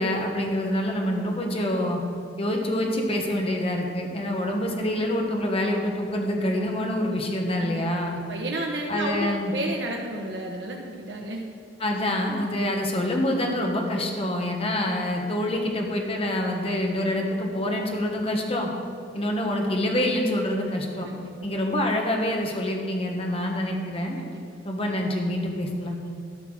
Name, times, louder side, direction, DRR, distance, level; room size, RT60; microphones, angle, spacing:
voice 1, 0.0-2.0 2.4-8.2 8.9-9.5 11.8-18.7 19.1-21.1 21.4-24.2 24.6-26.0, left 1 dB, 30° left, 1 dB, 1.4 m, -26 dB
voice 2, 7.6-11.5 21.0-21.3 24.2-24.6, right 1 dB, 70° right, -1 dB, 1.0 m, -32 dB
12.5 x 5.8 x 6.3 m, 2.6 s
head